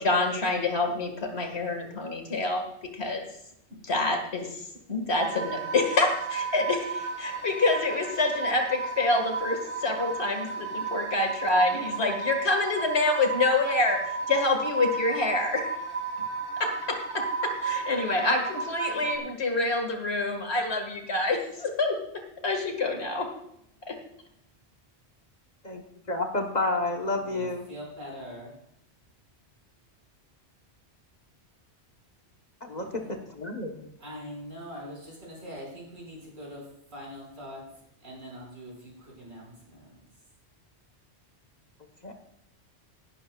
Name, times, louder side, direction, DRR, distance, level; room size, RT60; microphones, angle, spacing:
voice 1, 0.0-2.7 2.9-3.3 3.8-4.6 4.9-14.0 14.3-15.7 16.6-22.0 22.4-23.3 23.9-24.0, left 2 dB, 70° left, 4 dB, 2.1 m, -27 dB
sound 1, 5.1-19.2, right 4 dB, 10° left, 2.0 m, -33 dB
voice 2, 26.1-27.7 32.7-33.9 42.0-42.1, left 2 dB, 40° left, 3 dB, 1.1 m, -30 dB
voice 3, 27.2-28.6 32.6-33.2 34.0-40.0, equal, 70° right, -4 dB, 5.8 m, -43 dB
17.0 x 12.0 x 2.3 m, 0.78 s
omnidirectional pair, 1.1 m